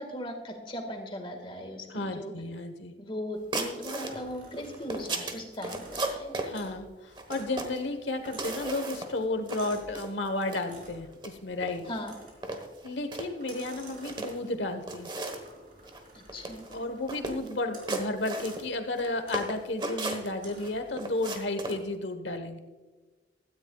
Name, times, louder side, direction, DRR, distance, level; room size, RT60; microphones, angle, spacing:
voice 1, 0.0-2.3 3.0-6.3 11.9-12.2 16.1-16.7, equal, 30° left, 4 dB, 1.8 m, -38 dB
voice 2, 1.9-2.9 6.5-11.9 12.8-15.1 16.7-22.6, left 2 dB, 75° left, 8 dB, 1.2 m, -33 dB
sound 1, 3.5-4.1 4.6-6.5 7.2-7.8 8.3-9.2 9.5-9.6 9.9-10.6 11.1-11.3 11.6-12.0 12.4-13.3 13.9-14.5 14.9-15.5 15.8-16.0 16.3-16.8 17.1-17.5 17.9-19.1 19.3-20.7 21.0-21.8, right 2 dB, 25° right, 1.2 m, -35 dB
sound 2, 4.1-5.1 5.5-6.9 7.3-7.6 7.8-10.0 10.6-11.1 12.0-12.6 13.3-14.6 15.4-17.1 17.7-18.0 18.4-18.7 19.2-19.5 20.4-20.9, right 1 dB, 45° right, 3.8 m, -50 dB
16.5 x 13.5 x 2.4 m, 1.3 s
head